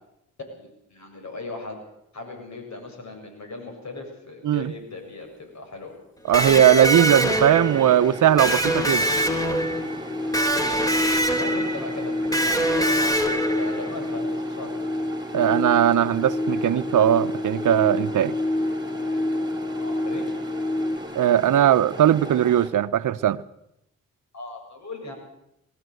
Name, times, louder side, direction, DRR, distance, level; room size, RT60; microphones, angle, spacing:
voice 1, 0.5-1.8 2.1-5.9 11.3-14.7 19.7-20.3 24.3-25.1, left 2 dB, 60° left, 7.5 m, -38 dB
Electric guitar, 6.3-14.0, right 1 dB, 10° left, 3.4 m, -24 dB
voice 2, 6.3-9.1 15.3-18.3 21.1-23.4, right 11 dB, 75° right, 0.9 m, -19 dB
sound 1, 7.1-22.7, equal, 15° right, 3.9 m, -38 dB
sound 2, 7.8-21.0, left 1 dB, 35° left, 2.6 m, -29 dB
21.0 x 16.5 x 7.9 m
cardioid pair, 70°, 32 cm